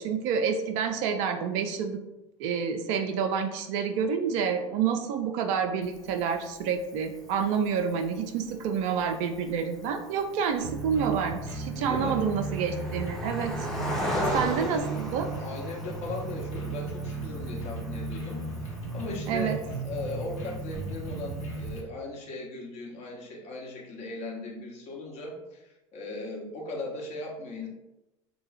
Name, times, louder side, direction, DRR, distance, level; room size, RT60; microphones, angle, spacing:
voice 1, 0.0-2.0 2.4-13.5 14.3-15.3 19.3-19.6, right 6 dB, 50° right, 6 dB, 0.4 m, -28 dB
Cricket, 5.8-21.8, equal, ahead, 0.7 m, -40 dB
sound 1, 10.6-21.8, right 3 dB, 70° left, 1.0 m, -35 dB
voice 2, 11.8-12.2 14.1-14.7 15.4-27.7, left 2 dB, 40° left, -1 dB, 0.9 m, -38 dB
3.7 x 2.2 x 3.2 m, 0.95 s
figure-of-eight pair, 75°, 17 cm